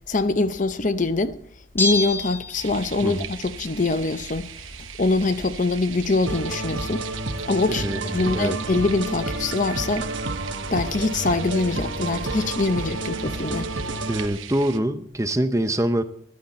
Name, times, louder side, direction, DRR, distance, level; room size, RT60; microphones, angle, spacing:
voice 1, 0.1-1.4 1.7-4.7 5.0-7.0 7.5-10.1 10.7-13.7, left 3 dB, 40° left, 0.7 m, -24 dB
Bell, 1.8-3.2 3.5-3.6, left 2 dB, 10° left, 1.0 m, -27 dB
sound 1, 2.5-14.8, right 9 dB, 85° right, 1.0 m, -39 dB
sound 2, 6.3-14.3, right 2 dB, 65° right, 1.3 m, -30 dB
voice 2, 7.7-8.6 14.1-16.0, right 1 dB, 15° right, 0.6 m, -25 dB
14.5 x 11.5 x 4.2 m
head